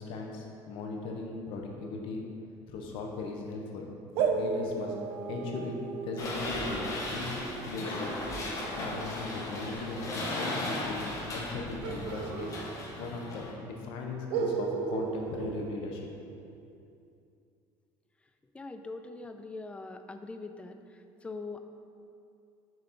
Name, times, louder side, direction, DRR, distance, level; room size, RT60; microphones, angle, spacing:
voice 1, 0.0-2.2 2.7-3.9 4.2-4.9 5.3-7.3 7.6-8.1 8.8-11.0 11.3-12.5 13.0-16.6, left 3 dB, 65° left, 1 dB, 1.0 m, -38 dB
sound 1, 4.1-9.6 11.8-13.3 13.5-13.6 14.3-16.5, right 5 dB, 75° right, 0.5 m, -35 dB
sound 2, 6.2-13.5, left 1 dB, 35° left, 1.2 m, -36 dB
voice 2, 18.5-20.8 21.2-21.6, left 3 dB, 10° left, 7 dB, 0.3 m, -42 dB
6.4 x 4.1 x 4.2 m, 2.5 s
cardioid pair, 135°, 10 cm